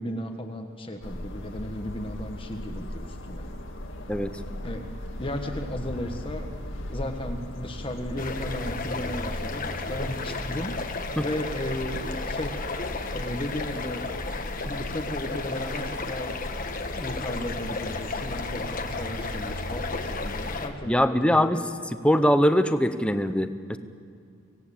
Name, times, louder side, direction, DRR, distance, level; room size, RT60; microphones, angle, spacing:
voice 1, 0.0-3.5 4.6-4.9 5.2-6.5 6.9-12.6 13.1-14.1 14.6-16.4 16.9-21.6, left 1 dB, 25° left, 3 dB, 1.4 m, -35 dB
sound 1, 1.0-20.7, left 1 dB, 65° left, 2.0 m, -37 dB
voice 2, 4.1-4.4 11.2-11.3 20.9-21.6 22.0-23.8, equal, 5° left, 10 dB, 0.8 m, -22 dB
sound 2, 8.2-20.7, left 4 dB, 40° left, 1.5 m, -34 dB
25.0 x 17.5 x 8.6 m, 2.4 s
head